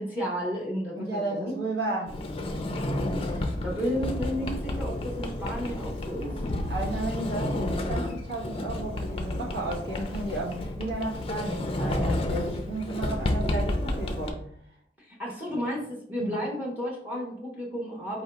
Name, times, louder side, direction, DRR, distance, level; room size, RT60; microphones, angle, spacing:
voice 1, 0.0-1.6 3.2-6.4 15.0-18.2, equal, 10° right, -3 dB, 0.9 m, -33 dB
voice 2, 1.0-2.2 6.7-14.4 16.2-16.4, right 2 dB, 65° right, -4 dB, 1.6 m, -33 dB
Sliding door, 2.1-14.3, left 1 dB, 30° left, 0.4 m, -31 dB
4.6 x 2.7 x 3.4 m, 0.66 s
head